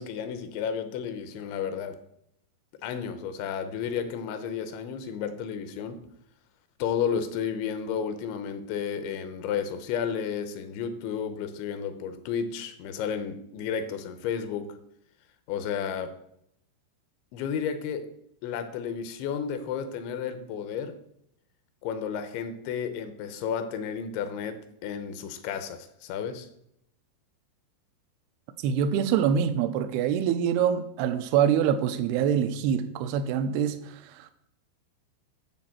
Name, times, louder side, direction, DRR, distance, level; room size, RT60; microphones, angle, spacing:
voice 1, 0.0-2.0 2.8-6.1 6.8-14.8 15.5-16.2 17.3-18.1 18.4-21.0 21.8-26.5, left 7 dB, 80° left, 3.2 m, -32 dB
voice 2, 28.6-33.8 34.2-34.3, right 8 dB, 80° right, 2.3 m, -25 dB
12.0 x 4.3 x 7.4 m
omnidirectional pair, 5.4 m